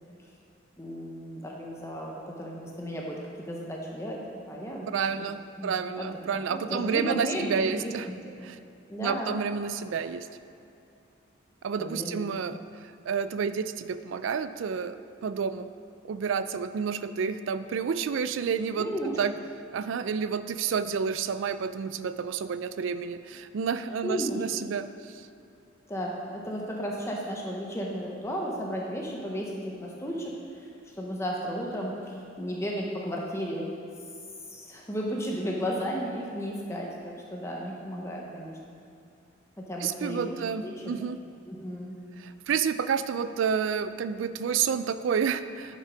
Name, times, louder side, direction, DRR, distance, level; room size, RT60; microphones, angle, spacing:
voice 1, 0.8-4.9 5.6-8.2 8.9-9.4 11.8-12.2 18.8-19.2 24.0-24.4 25.9-30.7 31.0-33.7 34.5-38.6 39.6-40.9 41.5-42.0, equal, 15° left, -2 dB, 0.8 m, -34 dB
voice 2, 4.8-8.1 8.4-8.6 9.0-10.3 11.6-15.7 16.1-18.9 19.2-19.3 19.7-25.2 39.8-41.2 42.2-45.8, right 6 dB, 75° right, 13 dB, 0.3 m, -30 dB
9.9 x 5.4 x 5.0 m, 2.5 s
head